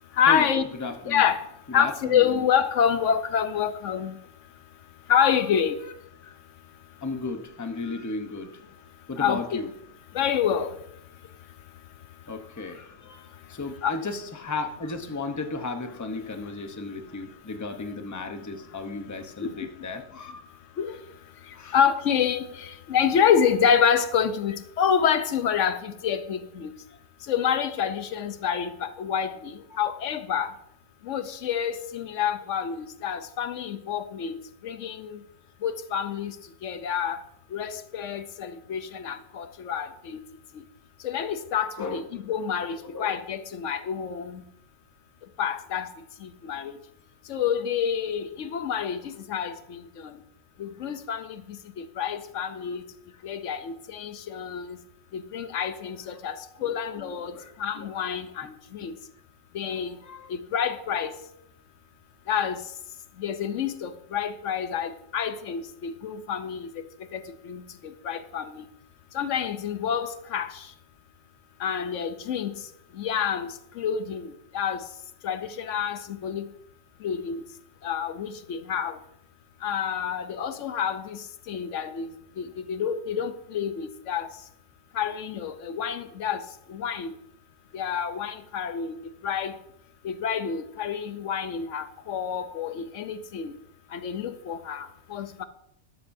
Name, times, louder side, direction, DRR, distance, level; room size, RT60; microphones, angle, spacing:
voice 1, 0.2-0.7 1.0-1.4 1.7-4.2 5.1-5.8 9.2-9.6 10.1-10.7 13.8-14.0 19.4-19.5 20.8-21.0 21.7-26.7 27.3-30.5 31.1-35.2 35.6-36.3 36.6-37.2 37.5-40.2 41.0-44.4 45.4-45.9 46.2-46.7 47.3-50.1 50.6-51.3 51.8-52.8 53.2-54.8 55.1-56.4 56.6-58.9 59.5-59.9 60.3-61.1 62.3-62.6 63.2-66.7 67.1-67.2 67.5-67.6 68.0-68.7 69.1-70.5 71.6-72.5 73.0-74.3 74.5-74.8 75.2-76.4 77.0-77.4 77.8-79.0 79.6-81.2 81.5-82.1 82.4-84.3 85.0-86.4 86.7-87.1 87.7-89.0 89.2-89.5 90.0-93.5 93.9-95.4, left 8 dB, 75° left, 1.0 m, -27 dB
voice 2, 0.8-1.2 1.7-2.4 6.2-6.3 7.0-8.6 9.1-9.7 12.3-20.6 21.5-21.8 41.8-42.1 42.8-43.2 56.6-57.9 60.0-60.3, left 3 dB, 15° left, 0.7 m, -35 dB
13.0 x 11.5 x 2.7 m
omnidirectional pair, 1.3 m